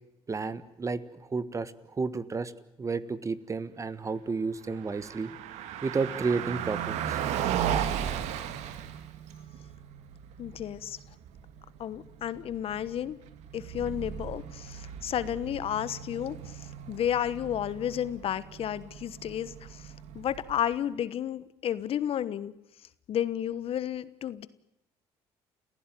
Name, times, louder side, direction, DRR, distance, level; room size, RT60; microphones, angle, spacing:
voice 1, 0.3-2.5 2.8-5.3 5.8-7.2, right 4 dB, 25° right, 16 dB, 1.4 m, -32 dB
Car passing by, 4.6-20.7, right 9 dB, 80° right, 1.9 m, -36 dB
voice 2, 10.4-11.0 11.8-13.2 13.5-22.5 23.1-24.5, left 10 dB, 55° left, 16 dB, 1.2 m, -32 dB
29.5 x 16.0 x 9.1 m, 0.88 s
cardioid pair, 90°, 11 cm